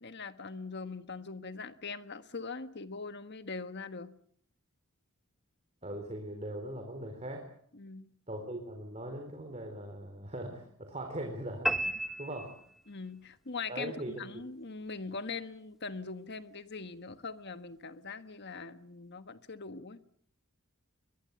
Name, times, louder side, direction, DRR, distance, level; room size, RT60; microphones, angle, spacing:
voice 1, 0.0-4.1 7.7-8.1 12.9-20.0, left 4 dB, 55° left, 1.5 m, -42 dB
voice 2, 5.8-7.4 8.3-11.7 12.2-12.5 13.7-14.4, right 1 dB, 30° right, 3.9 m, -40 dB
sound 1, 11.7-13.2, right 1 dB, ahead, 1.2 m, -33 dB
22.5 x 22.0 x 8.1 m
head